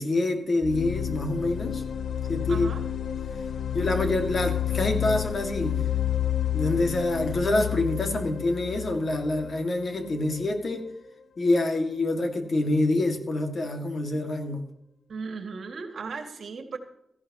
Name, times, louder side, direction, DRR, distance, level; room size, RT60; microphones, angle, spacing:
voice 1, 0.0-1.8 2.3-2.7 3.7-5.8 6.5-10.9 11.4-14.6, left 2 dB, 45° left, 4 dB, 1.9 m, -26 dB
sound 1, 0.6-10.4, left 10 dB, 70° left, 0.4 m, -30 dB
voice 2, 2.5-2.8 15.1-16.8, right 4 dB, 65° right, 5 dB, 1.9 m, -36 dB
17.5 x 14.5 x 2.9 m, 0.80 s
wide cardioid pair, 170°, 0 cm